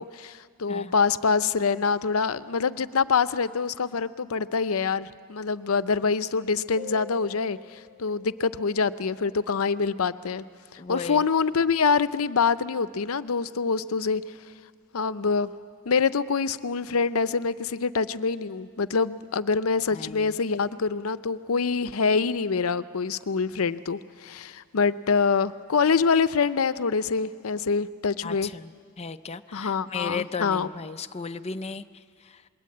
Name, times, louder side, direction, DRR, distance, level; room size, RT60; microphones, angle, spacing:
voice 1, 0.0-10.4 10.7-14.2 14.9-15.5 15.9-28.5 29.5-30.7, left 5 dB, 85° left, 14 dB, 0.7 m, -25 dB
sound 1, 6.8-10.1, left 8 dB, 20° right, 1.7 m, -47 dB
voice 2, 10.8-11.3 19.9-20.4 28.2-28.7 29.0-32.4, left 5 dB, 30° left, 10 dB, 0.6 m, -35 dB
27.5 x 21.5 x 8.6 m, 2.2 s
head